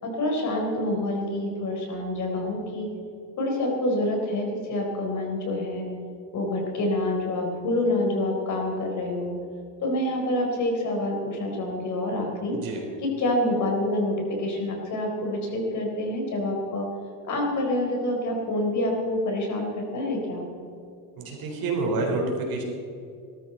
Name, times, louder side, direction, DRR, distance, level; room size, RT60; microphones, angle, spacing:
voice 1, 0.0-2.9 3.4-5.8 6.3-9.3 9.8-12.5 13.0-16.9 17.2-20.4, left 1 dB, 40° left, 0 dB, 4.3 m, -27 dB
voice 2, 12.5-12.8 21.2-22.6, right 3 dB, 55° right, 1 dB, 3.8 m, -28 dB
19.0 x 13.0 x 4.4 m, 2.5 s
cardioid pair, 140°, 43 cm